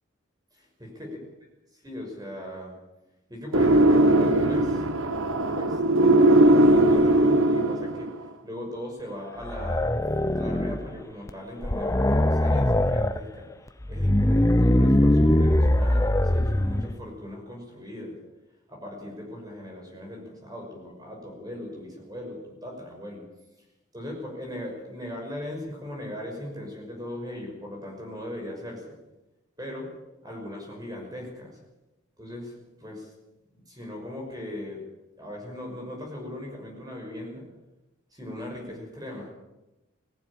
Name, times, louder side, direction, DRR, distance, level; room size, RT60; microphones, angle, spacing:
voice 1, 0.5-1.2 1.8-2.7 3.3-4.9 5.5-9.9 10.3-13.5 13.9-18.2 18.7-23.3 23.9-29.0 29.6-29.9 30.2-31.6 32.2-33.1 33.5-34.9 35.1-37.5 38.1-39.3, left 1 dB, 20° right, 0 dB, 5.9 m, -38 dB
sound 1, 3.5-8.1, right 1 dB, 80° right, 1.4 m, -19 dB
sound 2, 9.4-10.9 11.3-11.4 11.6-13.2 13.8-16.9, left 1 dB, 15° left, 0.8 m, -22 dB
21.0 x 14.5 x 8.8 m, 0.99 s
head